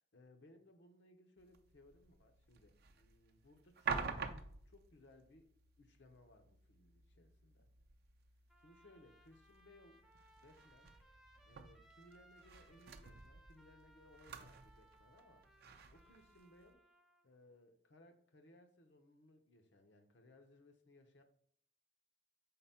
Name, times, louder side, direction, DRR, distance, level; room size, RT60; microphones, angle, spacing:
voice 1, 0.1-7.6 8.6-10.0 10.4-10.9 11.4-15.5 15.9-16.8 17.2-21.2, left 1 dB, 70° left, 6 dB, 0.8 m, -64 dB
sound 1, 1.4-16.7, right 5 dB, 60° right, 0.5 m, -49 dB
Trumpet, 8.5-17.3, right 1 dB, ahead, 0.6 m, -67 dB
4.4 x 3.9 x 5.6 m, 0.62 s
head